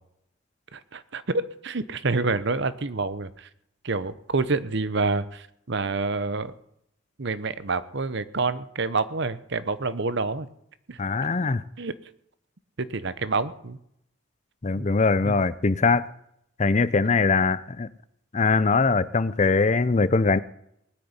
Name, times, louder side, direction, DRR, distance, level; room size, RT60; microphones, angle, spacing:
voice 1, 0.7-3.5 3.8-6.6 7.2-10.5 10.9-11.0 11.4-11.5 11.8-11.9 12.8-13.8 14.8-14.9 15.2-15.4, right 3 dB, 55° right, 14 dB, 0.9 m, -28 dB
voice 2, 11.0-11.6 14.6-16.1 16.6-17.9 18.3-20.4, left 4 dB, 35° left, 16 dB, 0.5 m, -22 dB
19.5 x 6.8 x 9.6 m, 0.75 s
head